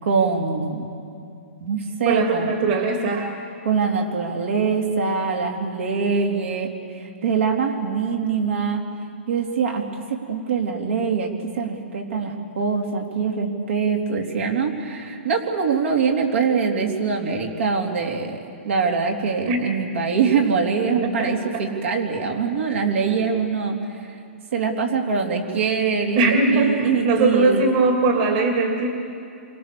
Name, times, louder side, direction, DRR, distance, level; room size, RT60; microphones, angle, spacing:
voice 1, 0.0-0.9 1.6-2.5 3.6-8.8 9.3-23.8 24.0-24.2 24.5-27.7, right 5 dB, 70° right, 2 dB, 3.5 m, -23 dB
voice 2, 2.0-3.3 19.5-19.6 21.0-21.6 23.2-23.3 26.2-28.9, right 3 dB, 40° right, 2 dB, 2.7 m, -21 dB
27.5 x 24.5 x 7.0 m, 2.6 s
hypercardioid pair, 155°, 7 cm